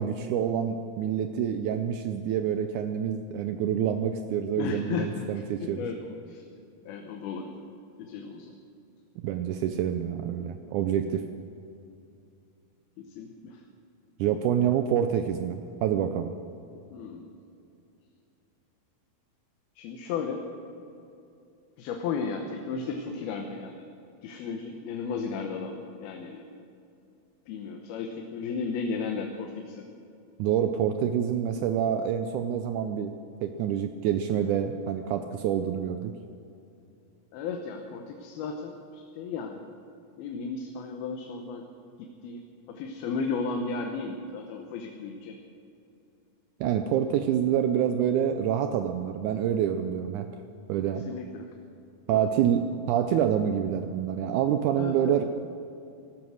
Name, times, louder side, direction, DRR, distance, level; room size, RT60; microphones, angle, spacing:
voice 1, 0.0-5.9 9.2-11.2 14.2-16.3 30.4-36.1 46.6-50.3 50.7-51.0 52.1-55.2, right 9 dB, 90° right, 7 dB, 1.7 m, -27 dB
voice 2, 4.6-5.3 5.6-6.4 6.9-7.6 8.0-8.6 13.0-13.6 16.9-17.4 19.8-20.4 21.8-23.8 24.2-26.5 27.5-29.9 37.3-39.6 40.2-41.7 42.0-42.4 42.7-45.4 51.1-51.5 52.1-52.3 54.7-55.3, left 5 dB, 85° left, 3 dB, 2.9 m, -34 dB
17.5 x 12.5 x 6.4 m, 2.6 s
omnidirectional pair, 4.3 m